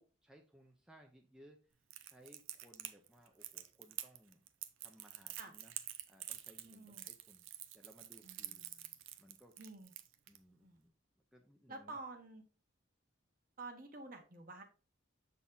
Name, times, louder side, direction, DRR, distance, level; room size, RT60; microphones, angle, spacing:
voice 1, 0.0-4.5 4.8-5.7 6.1-7.5 7.7-8.7 9.2-9.5 10.3-10.9 11.3-12.0, equal, 5° right, 1 dB, 0.6 m, -63 dB
Crackle, 1.9-10.4, right 13 dB, 75° right, 0.6 m, -47 dB
voice 2, 6.6-7.1 8.2-8.9 9.6-9.9 10.6-10.8 11.7-12.4 13.6-14.6, right 3 dB, 45° right, 4 dB, 1.3 m, -50 dB
7.1 x 4.1 x 3.8 m, 0.36 s
head